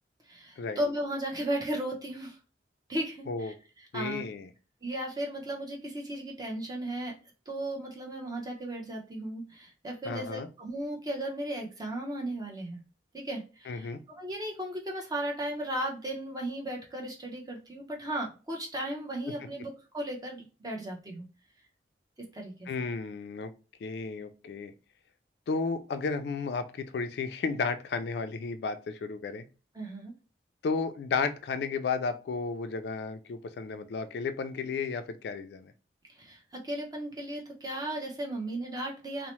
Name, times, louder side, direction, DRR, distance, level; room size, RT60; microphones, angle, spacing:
voice 1, 0.3-2.4 2.9-3.5 3.9-4.2 4.8-7.1 7.5-12.8 13.1-21.3 22.2-22.7 29.7-30.1 36.1-39.3, right 1 dB, 20° right, 0 dB, 0.6 m, -35 dB
voice 2, 3.9-4.5 10.1-10.5 13.7-14.0 22.7-23.5 23.8-24.7 25.5-29.5 30.6-35.7, left 4 dB, 65° left, 9 dB, 0.3 m, -33 dB
2.7 x 2.0 x 3.0 m, 0.34 s
head